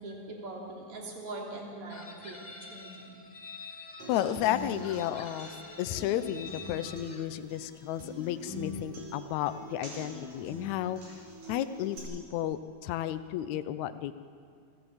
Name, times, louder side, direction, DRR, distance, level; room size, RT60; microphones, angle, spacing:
voice 1, 0.0-2.4 2.7-3.2, right 2 dB, 50° right, -2 dB, 4.1 m, -41 dB
Chicken rooster, 1.9-4.3 4.8-7.2, left 3 dB, 55° left, 0.4 m, -47 dB
Human voice / Acoustic guitar, 4.0-12.0, equal, 90° right, 6.3 m, -44 dB
voice 2, 4.1-11.0 11.5-14.1, left 12 dB, 80° left, 11 dB, 2.0 m, -33 dB
28.5 x 14.5 x 7.9 m, 2.2 s
omnidirectional pair, 3.4 m